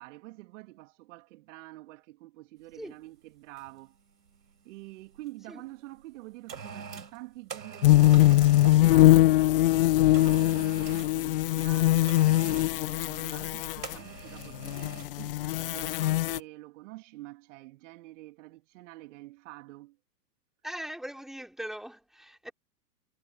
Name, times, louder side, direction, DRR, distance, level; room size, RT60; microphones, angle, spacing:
voice 1, 0.0-4.0 4.6-20.0, right 19 dB, 50° right, 2.7 m, -48 dB
sound 1, 2.7-2.9 3.6-3.9 4.1-5.3 6.0-8.9 10.1-11.2 12.1-12.8 13.8-15.2 15.5-15.7, right 6 dB, 85° right, 4.3 m, -44 dB
sound 2, 7.8-13.9 14.5-16.4, left 16 dB, 35° left, 0.4 m, -22 dB
voice 2, 20.6-22.5, equal, ahead, 4.8 m, -40 dB
hypercardioid pair, 115°, 49 cm